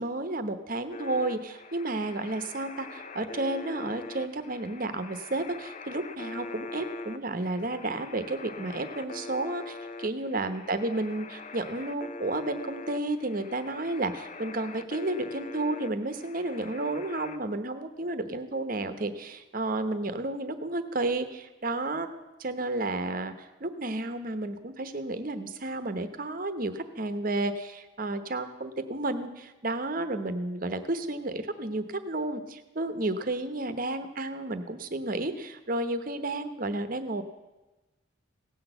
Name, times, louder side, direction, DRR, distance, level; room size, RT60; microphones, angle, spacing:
voice 1, 0.0-22.1 22.4-37.2, right 2 dB, 45° right, 10 dB, 0.9 m, -32 dB
sound 1, 0.9-17.4, left 3 dB, 40° left, 0.6 m, -43 dB
16.5 x 6.3 x 7.9 m, 1.1 s
head